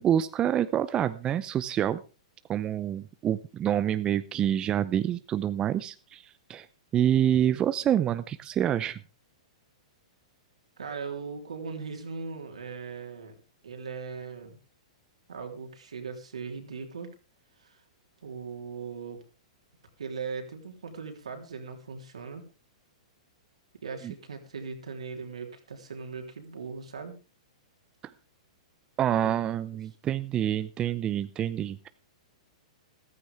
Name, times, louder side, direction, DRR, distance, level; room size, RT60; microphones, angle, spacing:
voice 1, 0.0-2.0 2.5-6.2 6.5-6.7 6.9-9.0 24.0-24.1 29.0-31.9, right 10 dB, 25° right, 13 dB, 0.6 m, -27 dB
voice 2, 10.8-13.4 13.6-14.6 15.3-17.1 17.6-17.8 18.2-19.2 20.0-22.4 23.8-27.2 29.2-29.3, right 5 dB, 80° right, 4 dB, 3.4 m, -39 dB
15.0 x 14.0 x 3.5 m, 0.32 s
hypercardioid pair, 120°, 3 cm